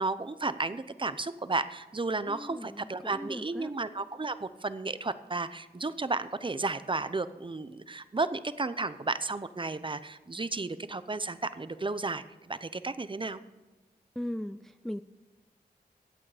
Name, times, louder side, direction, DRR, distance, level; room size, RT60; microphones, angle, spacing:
voice 1, 0.0-13.4, right 3 dB, 30° right, 13 dB, 0.7 m, -33 dB
voice 2, 2.3-3.7 14.2-15.0, left 1 dB, ahead, 12 dB, 0.3 m, -38 dB
16.0 x 8.5 x 4.9 m, 1.2 s
wide cardioid pair, 80°, 16 cm